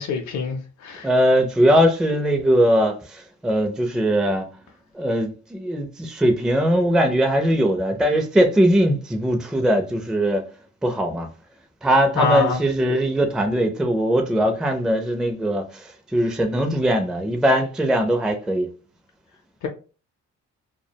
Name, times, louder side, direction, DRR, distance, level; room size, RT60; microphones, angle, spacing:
voice 1, 0.0-1.1 12.2-12.6, left 4 dB, 65° left, 0.5 m, -24 dB
voice 2, 1.0-4.5 4.9-10.4 10.8-11.3 11.8-18.7, equal, ahead, 0.4 m, -20 dB
2.3 x 2.1 x 2.7 m
cardioid pair, 90°, 30 cm